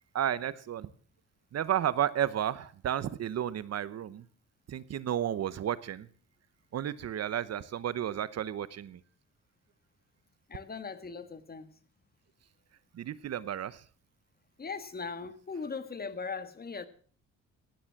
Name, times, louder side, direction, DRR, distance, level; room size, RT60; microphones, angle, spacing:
voice 1, 0.1-0.9 1.5-4.2 4.7-6.1 6.7-9.0 12.9-13.8, right 10 dB, 55° right, 18 dB, 0.9 m, -32 dB
voice 2, 10.5-11.7 14.6-16.9, left 5 dB, 30° left, 11 dB, 1.6 m, -39 dB
16.5 x 10.0 x 5.9 m, 0.43 s
cardioid pair, 90°, 30 cm